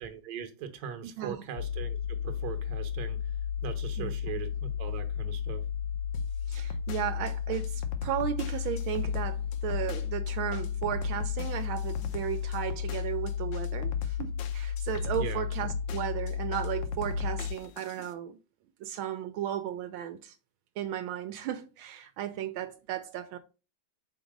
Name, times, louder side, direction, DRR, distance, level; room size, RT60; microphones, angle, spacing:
voice 1, 0.0-3.4 3.6-5.6 15.2-15.5, right 8 dB, 55° right, 1.3 m, -40 dB
sound 1, 1.6-17.6, left 8 dB, 85° left, 1.5 m, -33 dB
voice 2, 4.0-4.4 6.5-18.4 18.8-20.3 20.8-23.4, right 10 dB, 80° right, 1.4 m, -35 dB
sound 2, 6.1-18.1, left 3 dB, 70° left, 1.4 m, -40 dB
5.2 x 4.0 x 5.0 m
omnidirectional pair, 2.3 m